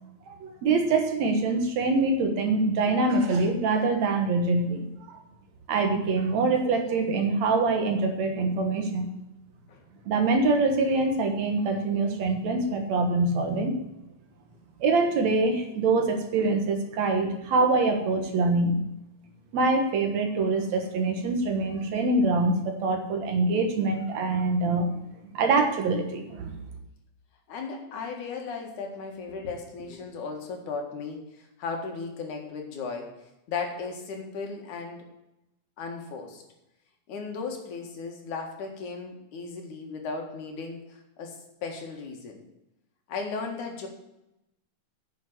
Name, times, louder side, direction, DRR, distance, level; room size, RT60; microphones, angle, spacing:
voice 1, 0.3-5.2 5.7-9.1 10.1-13.8 14.8-18.8 19.5-25.0 25.3-26.6, right 3 dB, 70° right, 4 dB, 2.5 m, -24 dB
voice 2, 27.5-35.0 35.8-36.4 37.1-42.4 43.1-43.9, left 4 dB, 85° left, 2 dB, 3.3 m, -36 dB
9.5 x 6.6 x 7.8 m, 0.88 s
omnidirectional pair, 3.4 m